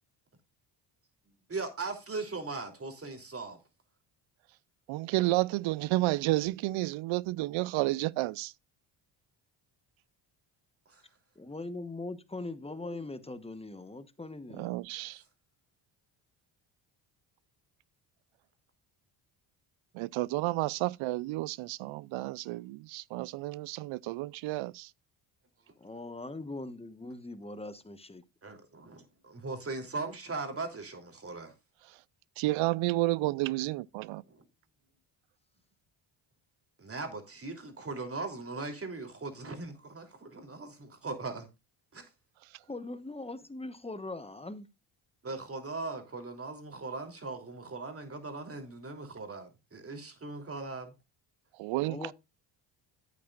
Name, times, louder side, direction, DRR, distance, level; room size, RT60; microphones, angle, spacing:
voice 1, 1.5-3.6 10.9-11.0 28.4-31.5 34.3-34.4 36.8-41.5 41.9-42.1 45.2-50.9, right 3 dB, 30° right, 3.2 m, -39 dB
voice 2, 4.9-8.5 14.5-15.2 19.9-24.9 32.4-34.2 51.6-52.1, right 19 dB, 75° right, 0.6 m, -31 dB
voice 3, 11.4-14.7 25.8-28.2 42.7-44.7 51.8-52.1, left 2 dB, 10° left, 1.1 m, -41 dB
11.5 x 8.5 x 2.4 m
cardioid pair, 85°, 48 cm